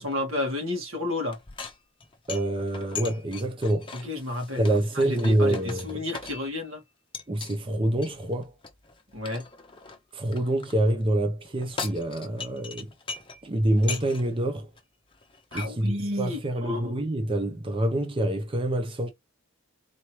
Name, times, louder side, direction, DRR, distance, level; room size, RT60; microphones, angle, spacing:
voice 1, 0.0-1.4 3.9-6.8 9.1-9.4 15.5-16.9, left 2 dB, 75° right, 2.2 m, -31 dB
sound 1, 1.3-6.7 7.1-7.6 8.0-10.7 11.4-13.4 13.7-14.4 14.8-14.9 15.1-15.7, left 5 dB, 25° left, 0.8 m, -40 dB
voice 2, 2.3-3.9 4.6-6.0 7.3-8.5 10.1-12.9 13.4-14.7 15.5-19.1, right 1 dB, 25° right, 0.7 m, -26 dB
4.1 x 3.0 x 3.0 m
head